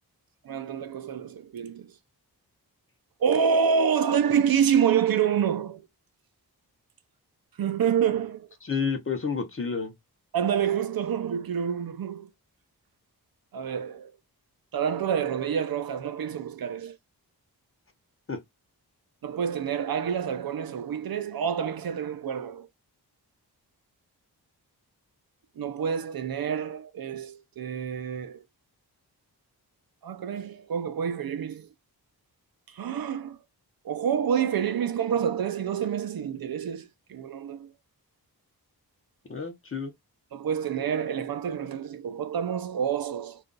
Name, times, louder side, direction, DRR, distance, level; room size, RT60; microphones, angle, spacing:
voice 1, 0.4-1.9 3.2-5.9 7.6-8.5 10.3-12.3 13.5-14.1 14.7-17.0 19.2-22.7 25.6-28.4 30.0-31.7 32.7-33.4 33.8-37.7 40.3-43.4, right 7 dB, 65° right, 0.5 m, -27 dB
voice 2, 8.6-9.9 18.3-18.4 39.3-39.9, left 5 dB, 35° left, 0.7 m, -30 dB
2.4 x 2.2 x 3.7 m
wide cardioid pair, 160°, 39 cm